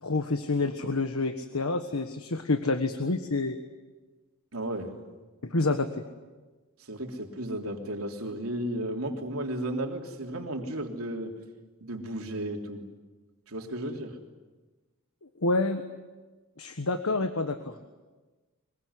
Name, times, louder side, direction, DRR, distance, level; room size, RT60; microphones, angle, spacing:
voice 1, 0.0-3.6 5.4-5.9 15.4-15.8 16.6-17.7, left 3 dB, 85° left, 8 dB, 1.4 m, -28 dB
voice 2, 4.5-5.0 6.9-11.3 11.8-12.8 13.5-14.2, right 1 dB, 80° right, 2 dB, 3.4 m, -34 dB
24.0 x 22.5 x 9.7 m, 1.3 s
head